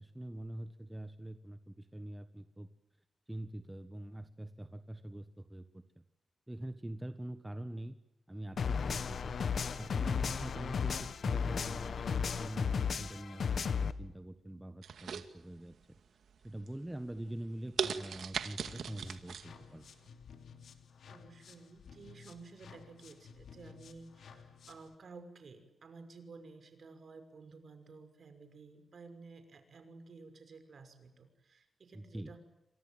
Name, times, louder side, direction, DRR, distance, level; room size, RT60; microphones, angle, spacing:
voice 1, 0.0-2.7 3.3-5.8 6.5-8.0 8.3-9.4 9.7-16.0 16.4-19.8 31.9-32.3, right 1 dB, 10° right, 9 dB, 1.4 m, -44 dB
sound 1, 8.6-13.9, left 6 dB, 65° left, 1.5 m, -34 dB
sound 2, 14.8-15.8 16.3-16.7 17.2-17.3 17.8-19.5 19.8-19.9, right 7 dB, 85° right, 2.1 m, -38 dB
sound 3, 18.6-24.9, left 6 dB, 85° left, 3.0 m, -55 dB
voice 2, 21.1-32.4, right 4 dB, 55° right, 9 dB, 5.9 m, -53 dB
28.5 x 26.0 x 7.6 m, 0.92 s
wide cardioid pair, 120°, 0 cm